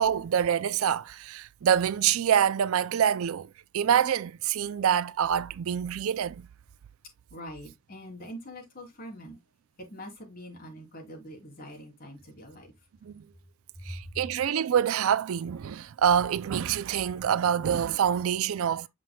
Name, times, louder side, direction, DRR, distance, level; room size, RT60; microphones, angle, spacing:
voice 1, 0.0-6.5 13.0-13.2 13.9-18.9, right 8 dB, 70° right, 0.4 m, -26 dB
voice 2, 7.3-9.4 9.8-12.7, equal, 45° left, 3.0 m, -44 dB
7.5 x 5.9 x 2.2 m
head